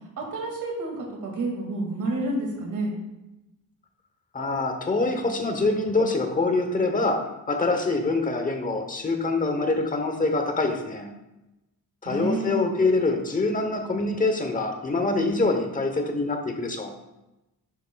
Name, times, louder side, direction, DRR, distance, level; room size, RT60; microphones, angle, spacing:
voice 1, 0.2-2.9 12.0-12.7, right 2 dB, 60° right, -1 dB, 2.2 m, -29 dB
voice 2, 4.3-11.1 12.0-16.9, left 3 dB, 25° left, 5 dB, 0.9 m, -25 dB
10.5 x 7.8 x 2.3 m, 0.97 s
wide cardioid pair, 180°, 35 cm